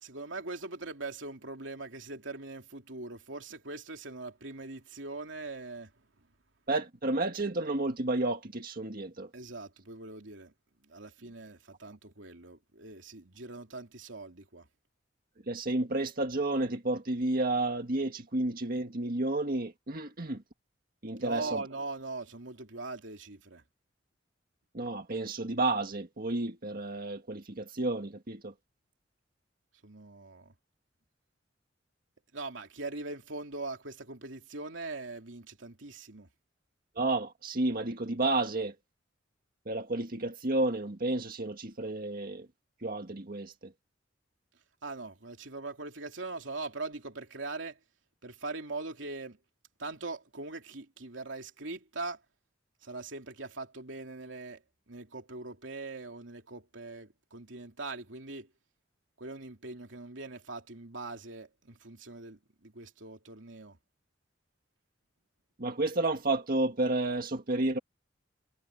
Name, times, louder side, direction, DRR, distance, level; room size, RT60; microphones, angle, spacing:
voice 1, 0.0-5.9 9.3-10.5 10.8-14.7 21.2-23.6 29.8-30.5 32.3-36.3 44.8-47.8 48.2-49.4 49.8-52.2 52.8-58.5 59.2-63.8, right 3 dB, 85° right, 2.9 m, -41 dB
voice 2, 6.7-9.3 15.5-20.4 21.0-21.6 24.7-28.5 37.0-38.8 39.7-42.5 42.8-43.7 65.6-67.8, right 2 dB, 50° right, 1.8 m, -31 dB
head